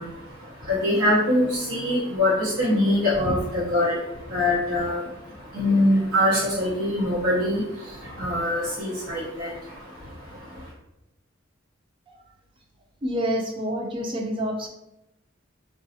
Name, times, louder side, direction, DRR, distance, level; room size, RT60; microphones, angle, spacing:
voice 1, 0.0-10.7, left 1 dB, 85° right, -9 dB, 0.9 m, -24 dB
voice 2, 13.0-14.7, equal, 25° right, 1 dB, 0.4 m, -27 dB
3.9 x 2.3 x 2.7 m, 0.89 s
head